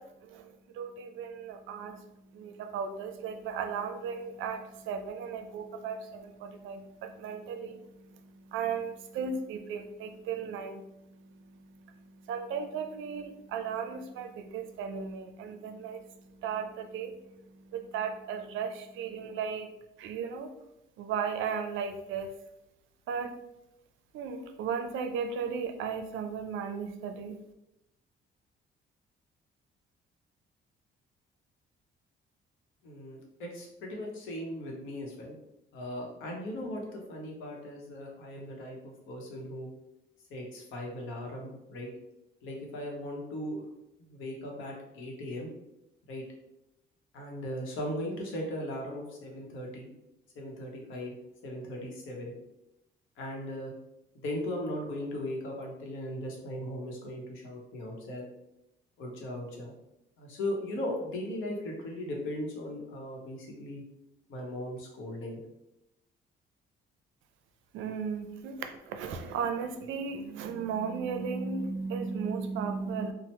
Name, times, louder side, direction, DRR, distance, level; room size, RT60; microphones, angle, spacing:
voice 1, 0.0-19.7 20.0-20.5 21.0-22.3 23.1-23.4 24.1-27.4 67.7-73.1, right 6 dB, 80° right, 7 dB, 0.4 m, -36 dB
voice 2, 32.8-35.3 35.7-39.7 40.3-41.9 42.4-43.6 44.1-45.5 46.1-46.2 47.1-49.9 50.4-51.2 51.4-52.3 53.2-53.8 54.1-58.3 59.0-59.7 60.2-63.8 64.3-65.4, left 1 dB, 85° left, 0 dB, 0.8 m, -38 dB
2.9 x 2.0 x 3.1 m, 0.88 s
cardioid pair, 90°, 20 cm